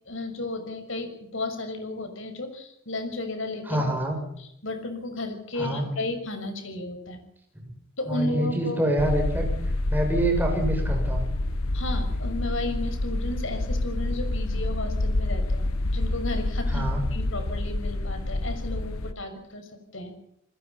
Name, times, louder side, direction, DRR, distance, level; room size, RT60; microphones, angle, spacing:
voice 1, 0.0-3.8 4.4-7.2 8.0-8.8 11.7-20.1, left 2 dB, 65° left, 7 dB, 6.3 m, -33 dB
voice 2, 3.7-4.2 5.6-5.9 8.1-11.3 16.7-17.0, right 1 dB, 10° right, 2 dB, 7.2 m, -26 dB
sound 1, 9.0-19.1, left 1 dB, 85° left, 1.1 m, -27 dB
28.5 x 20.5 x 5.7 m, 0.75 s
head